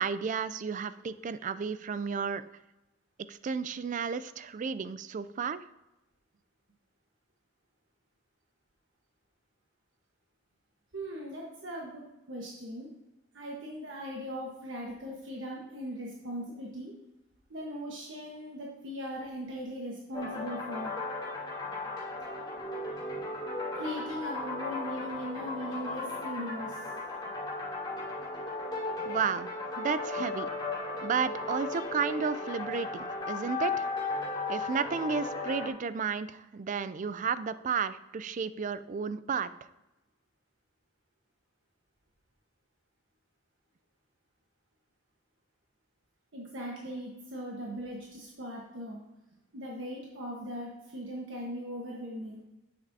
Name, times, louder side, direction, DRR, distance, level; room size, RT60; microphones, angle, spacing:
voice 1, 0.0-2.4 3.3-5.6 29.1-29.5 29.8-30.5 31.0-33.9 34.5-39.5, right 6 dB, 40° right, 14 dB, 0.3 m, -32 dB
voice 2, 10.9-12.9 13.3-16.9 17.5-20.9 23.7-26.9 46.3-49.0 49.5-52.4, equal, 70° right, -2 dB, 1.3 m, -39 dB
sound 1, 20.1-35.7, left 3 dB, 20° left, 2.9 m, -36 dB
9.3 x 7.6 x 2.7 m, 0.98 s
head